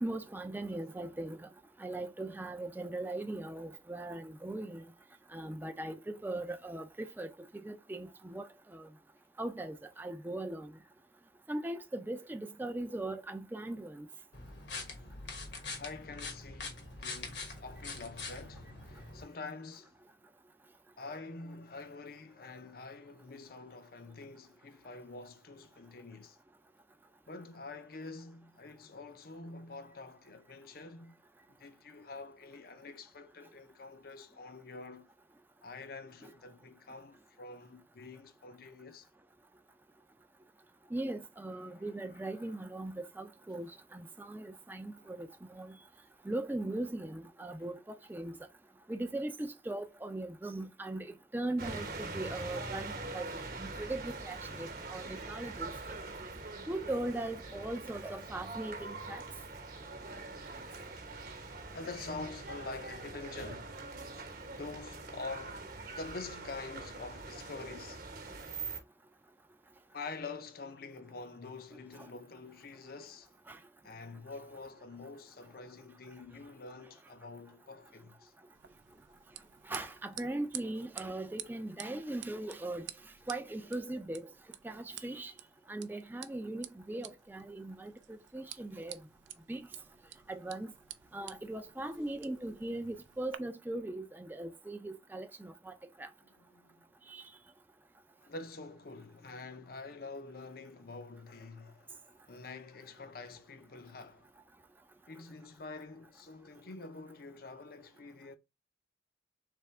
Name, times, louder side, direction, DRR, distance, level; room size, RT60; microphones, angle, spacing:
voice 1, 0.0-1.5 1.8-4.9 5.3-8.9 9.4-10.7 11.5-14.1 36.2-36.3 40.9-45.8 46.2-48.4 48.9-53.3 53.6-55.7 56.7-59.2 72.0-72.1 73.5-73.6 79.6-82.9 83.3-84.3 84.6-85.3 85.7-89.0 89.5-89.7 90.3-90.7 91.1-95.7 96.0-96.1 97.1-97.2, right 2 dB, 10° right, 0.4 m, -39 dB
sound 1, 14.3-19.2, left 3 dB, 70° left, 1.2 m, -44 dB
voice 2, 15.7-20.0 21.0-26.4 27.3-31.2 31.6-35.1 35.6-39.1 41.6-42.5 44.9-45.2 52.1-52.2 53.2-53.4 54.6-54.7 60.4-60.5 61.7-63.8 64.6-65.7 65.9-68.1 69.9-73.3 73.8-78.3 96.4-96.9 98.2-104.3 105.1-108.4, left 3 dB, 55° left, 0.6 m, -47 dB
sound 2, 51.6-68.8, right 3 dB, 50° right, 1.0 m, -43 dB
sound 3, 78.5-93.4, right 12 dB, 80° right, 0.5 m, -51 dB
3.5 x 3.3 x 4.3 m
head